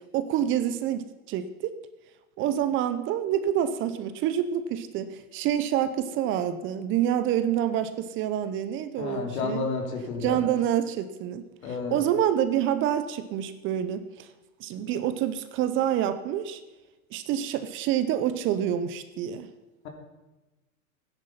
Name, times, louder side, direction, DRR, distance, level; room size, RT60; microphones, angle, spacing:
voice 1, 0.1-1.7 2.4-9.7 10.2-11.5 11.9-14.3 14.6-16.6 17.1-19.5, right 10 dB, 30° right, 11 dB, 0.7 m, -27 dB
voice 2, 9.0-10.5 11.6-12.0, left 4 dB, 70° left, 3 dB, 3.2 m, -31 dB
13.5 x 10.0 x 5.7 m, 1.1 s
hypercardioid pair, 130°, 43 cm